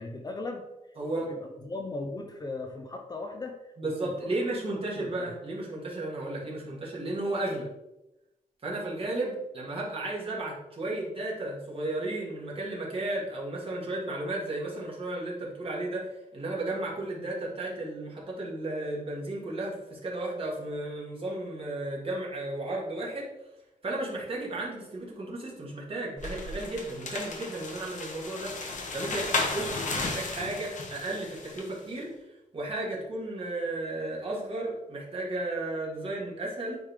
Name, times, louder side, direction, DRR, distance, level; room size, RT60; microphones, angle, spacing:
voice 1, 0.0-4.3 4.7-5.3, left 3 dB, 25° left, 3 dB, 0.5 m, -38 dB
voice 2, 3.8-7.7 8.6-23.3 23.8-28.5 28.9-32.1 32.5-36.8, right 2 dB, 40° right, -4 dB, 1.8 m, -34 dB
sound 1, 26.2-31.7, left 3 dB, 55° left, 1.0 m, -34 dB
8.9 x 3.3 x 3.4 m, 0.94 s
wide cardioid pair, 160°, 15 cm